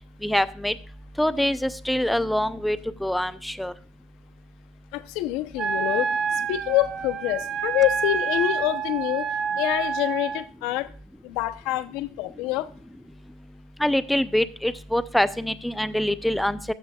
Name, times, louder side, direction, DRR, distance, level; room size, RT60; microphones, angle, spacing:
voice 1, 0.2-0.7 1.2-3.7 13.8-16.6, left 1 dB, 5° left, 0.6 m, -24 dB
voice 2, 4.9-6.1 6.5-9.3 9.6-10.9 11.2-12.7, left 16 dB, 70° left, 0.8 m, -26 dB
Wind instrument woodwind instrument, 5.6-10.4, right 6 dB, 40° right, 0.8 m, -28 dB
13.5 x 6.3 x 2.4 m
supercardioid pair, 110°, 0 cm